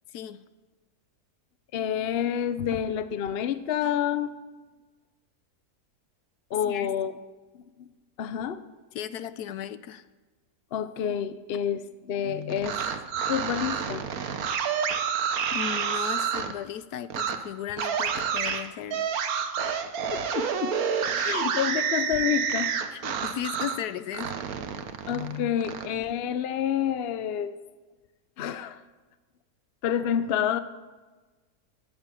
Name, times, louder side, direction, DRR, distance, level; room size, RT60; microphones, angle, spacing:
voice 1, 0.1-0.4 6.7-6.9 8.9-10.0 15.5-19.1 21.1-21.6 22.9-24.4, left 9 dB, 75° left, 14 dB, 1.2 m, -36 dB
voice 2, 1.7-4.3 6.5-7.1 7.8-7.9 8.2-8.6 10.7-12.8 13.3-14.0 14.4-14.5 20.1-20.8 21.1-22.7 25.1-27.5 28.4-28.8 29.8-30.6, left 9 dB, 50° left, 12 dB, 0.8 m, -28 dB
sound 1, 12.5-16.5 17.1-17.4 17.8-23.8 24.1-25.9, right 7 dB, 65° right, 1.4 m, -29 dB
13.5 x 8.8 x 9.1 m, 1.3 s
omnidirectional pair, 1.7 m